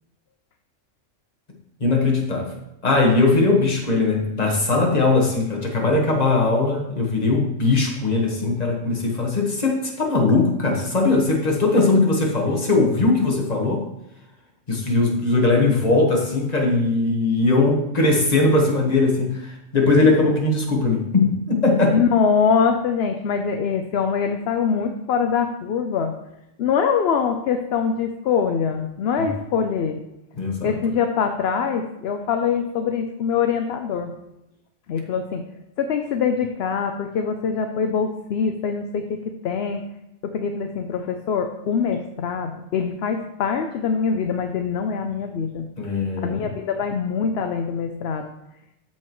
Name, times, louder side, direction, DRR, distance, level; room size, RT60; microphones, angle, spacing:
voice 1, 1.8-2.5 2.8-13.8 14.7-22.0 30.4-30.7 45.8-46.5, left 3 dB, 30° left, 0 dB, 1.4 m, -20 dB
voice 2, 21.9-26.1 26.6-30.0 30.6-34.1 34.9-35.4 35.8-39.8 40.2-45.7 46.2-48.3, left 6 dB, 60° left, 6 dB, 0.8 m, -23 dB
13.5 x 4.6 x 3.1 m, 0.88 s
omnidirectional pair, 1.3 m